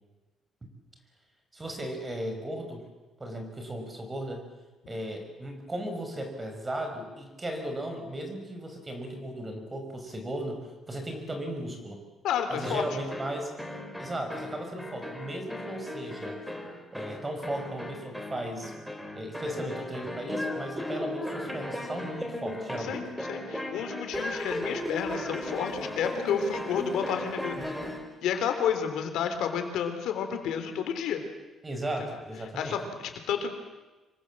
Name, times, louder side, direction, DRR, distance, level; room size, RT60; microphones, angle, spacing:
voice 1, 1.5-2.9 3.2-4.4 4.9-12.0 12.5-13.5 14.0-16.4 16.9-18.7 19.1-23.0 27.6-27.9 31.6-32.8, right 1 dB, 15° right, 4 dB, 5.4 m, -36 dB
voice 2, 12.2-12.9 22.8-27.6 28.2-31.2 32.6-33.5, left 8 dB, 80° left, 7 dB, 3.7 m, -30 dB
sound 1, 12.6-28.1, left 1 dB, ahead, 3.3 m, -36 dB
26.5 x 23.5 x 7.5 m, 1.2 s
cardioid pair, 140°, 0 cm